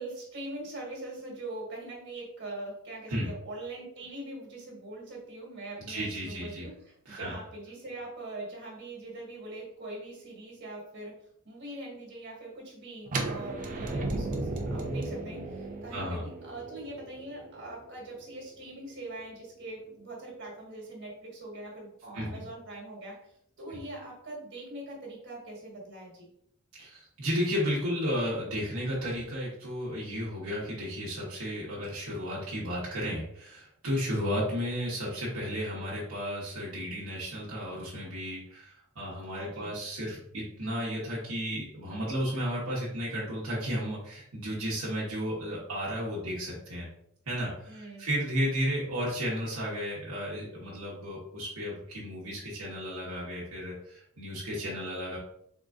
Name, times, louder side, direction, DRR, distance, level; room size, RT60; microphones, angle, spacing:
voice 1, 0.0-11.1 11.4-23.1 23.6-26.3 39.3-39.7 47.7-48.1, right 2 dB, 55° right, -2 dB, 1.5 m, -42 dB
voice 2, 5.8-6.7 7.0-7.3 15.9-16.3 22.1-22.4 23.7-23.8 26.8-46.9 47.3-55.2, equal, 75° right, -6 dB, 1.1 m, -33 dB
sound 1, 13.1-18.9, right 2 dB, 40° right, 0.6 m, -35 dB
3.8 x 3.7 x 2.4 m, 0.72 s
head